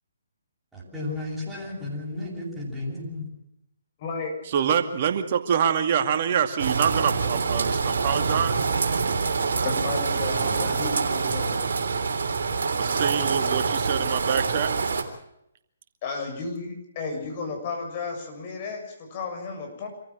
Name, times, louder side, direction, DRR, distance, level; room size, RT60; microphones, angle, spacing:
voice 1, 0.7-3.3 10.3-10.9, left 2 dB, 5° right, -7 dB, 7.4 m, -33 dB
voice 2, 4.0-4.3 9.6-11.5 16.0-19.9, left 4 dB, 40° left, 3 dB, 7.0 m, -33 dB
voice 3, 4.5-8.6 12.8-14.7, right 8 dB, 45° right, 7 dB, 2.2 m, -25 dB
sound 1, 6.6-15.0, right 4 dB, 60° right, 3.4 m, -25 dB
26.0 x 15.0 x 7.6 m, 0.79 s
figure-of-eight pair, 135°, 0 cm